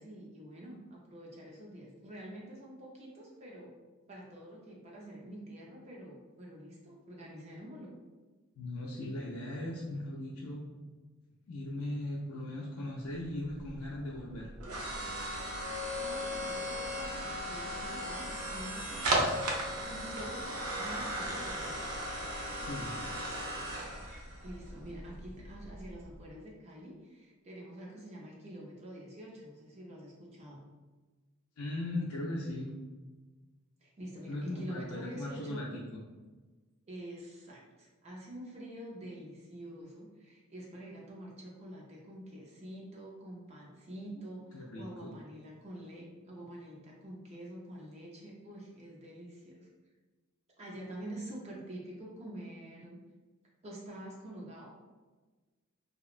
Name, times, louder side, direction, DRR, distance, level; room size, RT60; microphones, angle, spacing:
voice 1, 0.0-3.7 4.1-8.0 15.7-19.3 19.6-22.0 24.4-30.6 33.8-35.6 36.9-49.7 50.6-53.0 53.6-54.7, right 1 dB, 30° right, -3 dB, 0.4 m, -47 dB
voice 2, 8.6-10.7 11.5-14.5 22.6-23.0 31.6-32.7 34.3-36.0 44.1-44.2 44.5-45.1, left 1 dB, 80° left, -4 dB, 0.4 m, -38 dB
sound 1, 13.1-26.2, right 1 dB, 85° right, 0.5 m, -36 dB
2.8 x 2.0 x 2.4 m, 1.3 s
head